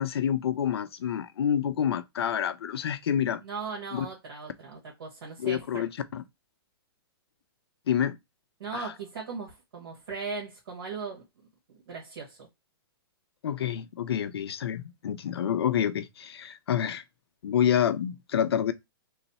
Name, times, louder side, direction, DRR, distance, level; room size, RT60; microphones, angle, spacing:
voice 1, 0.0-3.4 3.9-4.1 5.4-6.2 7.9-8.2 8.7-8.9 13.4-17.0 17.4-18.7, left 9 dB, 80° left, 0.6 m, -28 dB
voice 2, 3.4-5.8 8.6-11.2 11.9-12.5, right 4 dB, 65° right, 1.4 m, -38 dB
3.1 x 2.0 x 4.0 m
hypercardioid pair, 165°, 13 cm